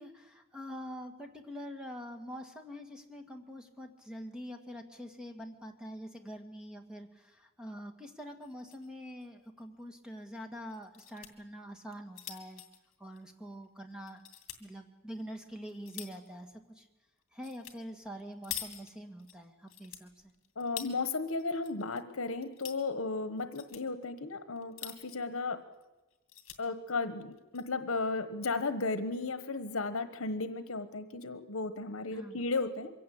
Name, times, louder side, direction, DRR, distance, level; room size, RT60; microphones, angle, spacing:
voice 1, 0.0-12.6 13.0-14.2 14.6-16.9 17.3-20.3 32.1-32.4, equal, 5° right, 4 dB, 1.9 m, -45 dB
sound 1, 8.4-8.9 9.2-9.3 9.6-9.7 10.7-11.3 11.8-13.7 14.1-14.6 15.2-16.3 17.4-17.8 18.0-19.3 19.7-21.0 21.4-22.0 22.3-22.8 23.4-23.8 24.6-25.3 25.7-25.8 26.1-26.6 27.3-27.6, left 11 dB, 65° left, 2.4 m, -45 dB
voice 2, 20.6-25.6 26.6-32.9, left 3 dB, 80° left, 11 dB, 1.2 m, -34 dB
23.5 x 16.5 x 8.5 m, 1.1 s
head